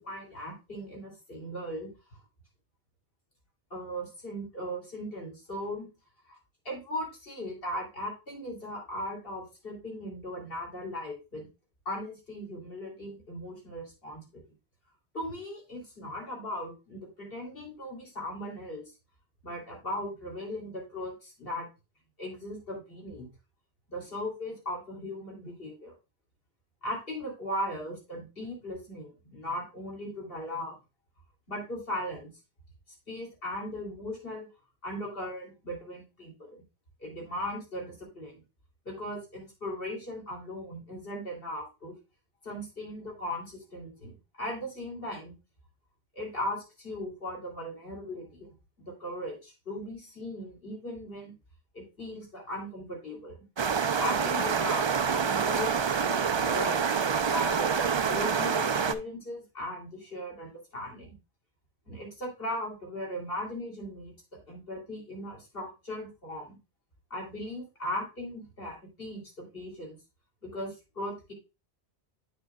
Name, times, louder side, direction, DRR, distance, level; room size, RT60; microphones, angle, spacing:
voice 1, 0.0-1.9 3.7-5.9 6.3-6.4 6.6-11.5 11.8-14.4 15.1-18.8 19.4-21.7 22.2-23.3 23.9-25.9 26.8-30.7 31.5-32.3 33.1-34.5 34.8-36.6 37.0-38.4 38.8-41.9 42.4-45.3 46.1-48.5 48.8-51.3 51.7-53.5 54.0-55.7 56.0-61.1 61.9-66.6 67.1-70.0 70.4-71.3, left 1 dB, 60° left, -1 dB, 3.2 m, -38 dB
sound 1, 53.6-58.9, right 6 dB, 50° right, 0.3 m, -27 dB
8.7 x 6.9 x 2.3 m, 0.27 s
omnidirectional pair, 1.1 m